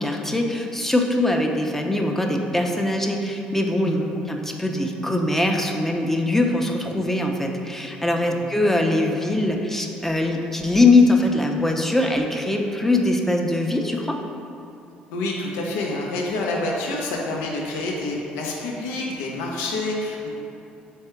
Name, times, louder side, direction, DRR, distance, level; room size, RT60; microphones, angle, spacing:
voice 1, 0.0-4.0 4.3-14.2, left 2 dB, 10° left, 2 dB, 0.6 m, -22 dB
voice 2, 15.1-20.3, left 2 dB, 85° left, -1 dB, 0.6 m, -28 dB
3.6 x 3.3 x 4.4 m, 2.7 s
supercardioid pair, 65°, 4 cm